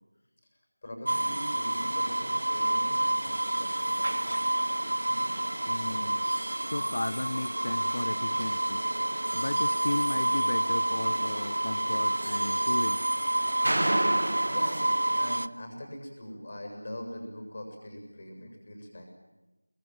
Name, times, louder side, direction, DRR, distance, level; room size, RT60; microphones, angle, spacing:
voice 1, 0.8-4.2 12.2-12.3 13.4-13.5 14.2-19.0, left 1 dB, 30° left, 3 dB, 7.6 m, -42 dB
sound 1, 1.1-15.5, right 1 dB, 55° right, 1.0 m, -28 dB
voice 2, 5.7-6.2 6.6-8.8 9.3-13.0, left 1 dB, 45° left, 14 dB, 1.0 m, -34 dB
28.0 x 25.0 x 7.6 m, 1.1 s
figure-of-eight pair, 170°, 0 cm